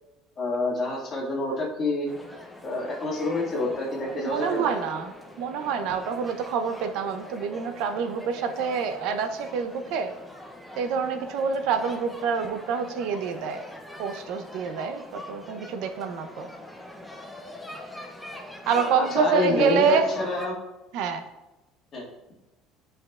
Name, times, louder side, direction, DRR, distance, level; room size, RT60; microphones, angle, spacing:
voice 1, 0.4-2.1 2.6-4.7 18.7-20.5 21.9-22.0, left 2 dB, 25° left, -4 dB, 1.8 m, -28 dB
sound 1, 2.1-20.5, left 1 dB, ahead, 0.6 m, -42 dB
voice 2, 4.1-10.1 10.8-13.6 14.0-16.5 18.7-20.1 20.9-21.2, right 6 dB, 60° right, 8 dB, 0.6 m, -27 dB
9.7 x 5.1 x 2.4 m, 1.0 s
cardioid pair, 170°, 0 cm